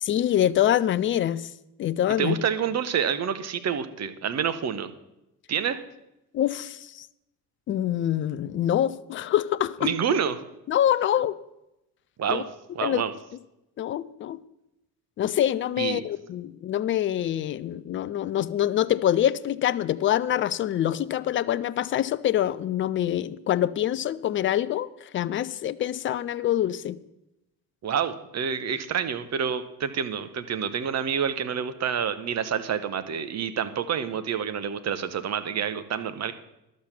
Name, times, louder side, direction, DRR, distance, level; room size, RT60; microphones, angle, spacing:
voice 1, 0.0-1.5 1.8-2.3 6.3-7.1 7.7-9.9 10.7-11.4 12.3-12.4 12.8-13.0 13.8-14.4 15.2-27.0, left 11 dB, 25° left, 17 dB, 0.4 m, -25 dB
voice 2, 2.2-4.9 5.5-5.8 9.8-10.4 12.2-12.4 12.7-13.1 15.8-16.1 27.8-36.3, right 7 dB, 35° right, 10 dB, 1.0 m, -28 dB
11.5 x 7.3 x 5.8 m, 0.89 s
figure-of-eight pair, 55°, 48 cm